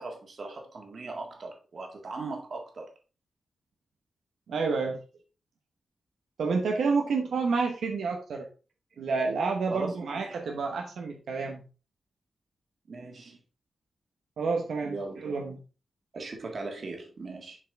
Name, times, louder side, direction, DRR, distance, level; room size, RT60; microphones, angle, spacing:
voice 1, 0.0-2.9 9.7-10.2 12.9-13.4 14.8-15.3 16.1-17.6, right 3 dB, 50° right, 2 dB, 1.8 m, -39 dB
voice 2, 4.5-5.0 6.4-8.5 9.0-11.6 14.4-15.6, right 4 dB, 90° right, 2 dB, 1.0 m, -29 dB
7.3 x 4.7 x 3.5 m, 0.35 s
wide cardioid pair, 105°, 0 cm